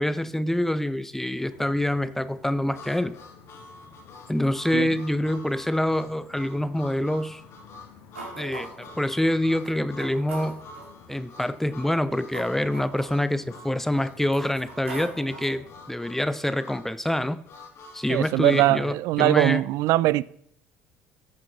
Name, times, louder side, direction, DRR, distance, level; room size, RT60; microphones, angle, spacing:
voice 1, 0.0-3.1 4.3-7.4 8.4-10.6 11.1-17.4 17.9-19.6, left 1 dB, 5° left, 0.7 m, -26 dB
sound 1, 1.5-15.9, left 5 dB, 65° left, 2.1 m, -52 dB
Harmonica, 2.7-18.7, left 3 dB, 45° left, 2.2 m, -47 dB
sound 2, 8.1-9.0 9.6-9.7 10.0-10.9 11.7-13.6 14.2-15.7, right 3 dB, 80° right, 2.3 m, -41 dB
voice 2, 18.1-20.2, right 17 dB, 55° right, 0.4 m, -21 dB
14.0 x 8.7 x 4.2 m
figure-of-eight pair, 55°, 7 cm